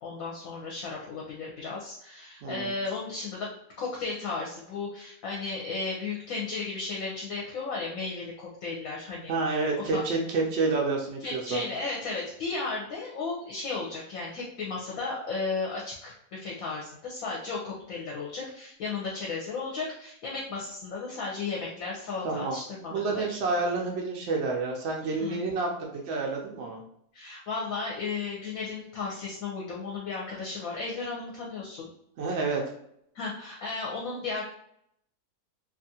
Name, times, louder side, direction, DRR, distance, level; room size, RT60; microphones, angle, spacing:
voice 1, 0.0-3.5 3.8-9.3 9.7-10.0 11.2-23.4 25.2-25.4 27.1-31.9 33.1-34.4, left 4 dB, 70° left, -3 dB, 0.9 m, -34 dB
voice 2, 2.4-2.7 9.3-11.6 22.2-22.6 22.9-26.8 32.2-32.6, right 3 dB, 80° right, -1 dB, 0.6 m, -29 dB
2.7 x 2.4 x 2.7 m, 0.72 s
omnidirectional pair, 1.7 m